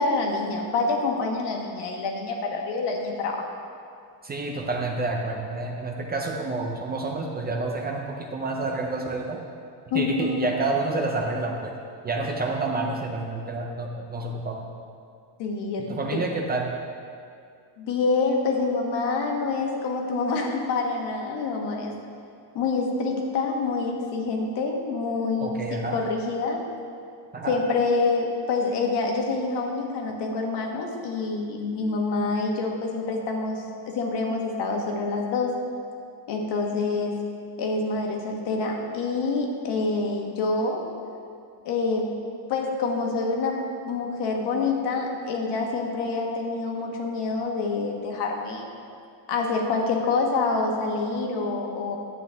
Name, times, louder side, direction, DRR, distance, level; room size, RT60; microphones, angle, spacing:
voice 1, 0.0-3.4 9.9-10.5 15.4-16.2 17.8-21.9 22.5-25.6 25.9-26.6 27.5-33.6 33.9-35.5 36.3-37.2 37.6-40.8 41.6-42.1 42.5-43.6 43.9-48.7 49.3-52.0, left 3 dB, 70° left, 1 dB, 1.4 m, -26 dB
voice 2, 4.2-9.4 9.9-11.7 12.0-14.7 15.9-16.7 25.4-26.0 27.3-27.6, right 3 dB, 20° right, 1 dB, 0.5 m, -29 dB
10.5 x 8.3 x 3.4 m, 2.3 s
cardioid pair, 170°, 43 cm